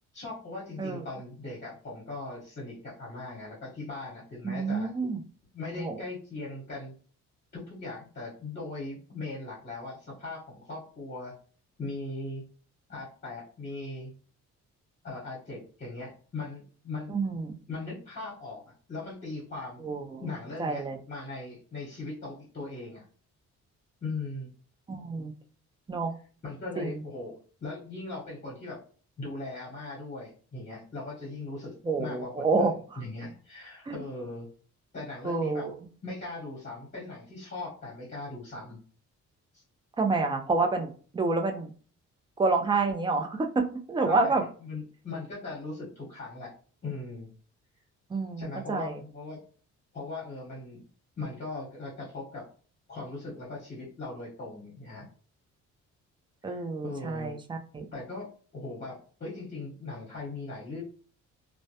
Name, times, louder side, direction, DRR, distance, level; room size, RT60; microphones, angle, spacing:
voice 1, 0.1-4.9 5.5-6.9 7.5-11.3 11.8-12.4 12.9-14.1 15.0-17.2 17.7-18.6 18.9-19.9 20.2-23.0 24.0-24.5 26.4-27.3 27.6-28.8 29.2-34.5 34.9-35.7 36.0-38.8 39.5-39.6 44.0-46.5 46.8-47.3 48.4-49.4 49.9-50.8 51.2-52.4 52.9-55.1 56.4-57.3 57.9-60.8, left 3 dB, 35° left, -6 dB, 1.0 m, -39 dB
voice 2, 4.4-5.2 5.8-6.0 17.1-17.6 19.8-20.2 20.6-21.0 24.9-25.3 25.9-26.2 26.8-27.0 31.8-32.7 33.9-34.0 35.2-35.7 40.0-41.7 42.4-44.4 48.1-49.0 56.4-57.9, right 3 dB, 15° right, 3 dB, 0.4 m, -28 dB
2.1 x 2.1 x 2.8 m, 0.41 s
cardioid pair, 90°, 30 cm